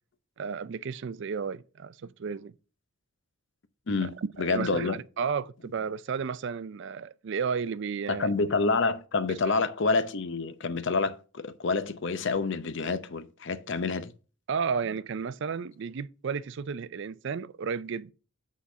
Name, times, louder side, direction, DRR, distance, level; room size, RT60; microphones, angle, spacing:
voice 1, 0.4-2.5 4.4-8.3 14.5-18.1, right 6 dB, 55° right, 0.4 m, -33 dB
voice 2, 3.9-5.0 8.1-14.1, left 4 dB, 55° left, 0.7 m, -28 dB
8.2 x 4.1 x 6.0 m
head